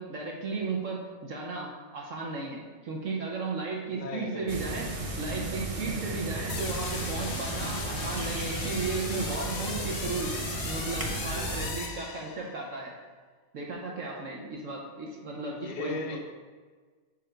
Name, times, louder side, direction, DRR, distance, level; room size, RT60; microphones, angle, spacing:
voice 1, 0.0-4.9 5.2-10.3 10.6-12.9 13.5-16.2, right 3 dB, 65° right, -2 dB, 1.3 m, -35 dB
voice 2, 3.9-4.6 15.6-16.2, left 2 dB, 45° left, 1 dB, 0.7 m, -36 dB
sound 1, 4.5-11.7, right 2 dB, 35° right, 0.6 m, -34 dB
sound 2, 6.5-12.7, left 4 dB, 75° left, 1.2 m, -38 dB
5.5 x 4.4 x 5.0 m, 1.4 s
omnidirectional pair, 1.5 m